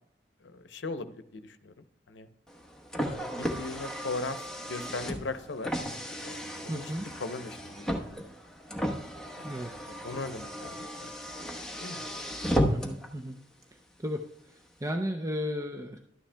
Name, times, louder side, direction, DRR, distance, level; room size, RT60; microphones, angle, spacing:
voice 1, 0.4-2.3 3.0-5.7 6.2-6.9 7.2-8.2 9.4-9.6 9.9-11.1 11.8-12.0, left 3 dB, 90° left, 10 dB, 0.7 m, -39 dB
Car, 2.5-13.1, equal, 5° left, 1.0 m, -34 dB
voice 2, 6.7-7.1 9.4-9.7 12.7-13.4 14.0-14.2 14.8-16.0, equal, 20° right, 4 dB, 0.5 m, -33 dB
12.5 x 10.0 x 2.2 m, 0.78 s
head